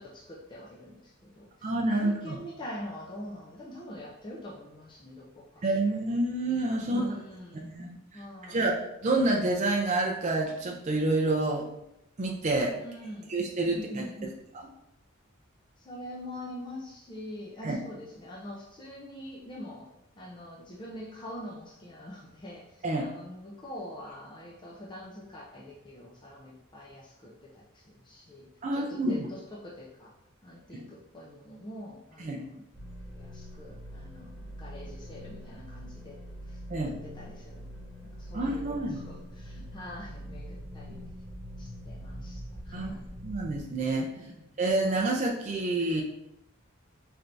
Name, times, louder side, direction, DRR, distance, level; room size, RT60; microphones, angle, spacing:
voice 1, 0.0-5.7 6.8-7.7 8.1-8.6 12.8-13.4 13.7-14.4 15.8-19.9 20.2-28.5 28.7-30.1 30.4-32.7 33.1-36.2 36.4-37.7 38.2-41.0 41.6-43.1 44.0-44.5, left 1 dB, 20° left, -4 dB, 0.5 m, -44 dB
voice 2, 1.6-2.4 5.6-7.1 7.6-11.7 12.2-12.8 13.3-14.0 17.6-17.8 22.8-23.0 28.6-29.3 30.7-30.9 32.2-32.4 36.7-36.9 38.3-39.0 42.7-42.9 43.2-44.3 44.6-46.0, right 2 dB, 35° right, -1 dB, 0.4 m, -28 dB
sound 1, 32.7-43.6, equal, 5° left, 1.2 m, -43 dB
4.4 x 3.3 x 2.6 m, 0.85 s
head